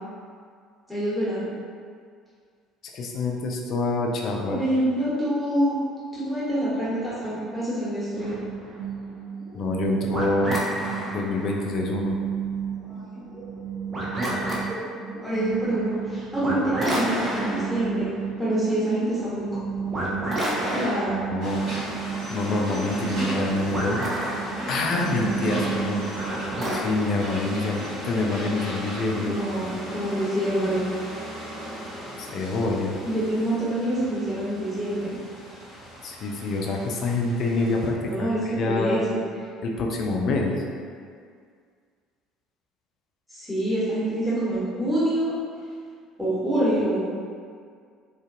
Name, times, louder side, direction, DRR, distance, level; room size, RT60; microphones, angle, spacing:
voice 1, 0.9-1.5 4.5-5.8 6.1-8.4 12.8-13.1 15.2-18.1 18.4-19.5 19.8-20.2 20.7-21.2 29.2-30.8 33.0-35.2 38.0-38.4 38.7-39.2 43.3-45.3 46.2-47.0, right 1 dB, ahead, -11 dB, 1.1 m, -26 dB
voice 2, 2.9-4.6 9.5-10.6 11.1-12.2 21.3-21.6 22.3-24.0 24.7-26.0 26.7-29.4 32.2-33.0 36.0-39.1 39.6-40.6, left 3 dB, 50° left, 0 dB, 0.3 m, -26 dB
sound 1, 8.2-26.8, right 3 dB, 30° right, 0.6 m, -30 dB
sound 2, 21.4-37.9, equal, 50° right, 1.1 m, -36 dB
2.5 x 2.3 x 2.5 m, 2.1 s
figure-of-eight pair, 60°, 0 cm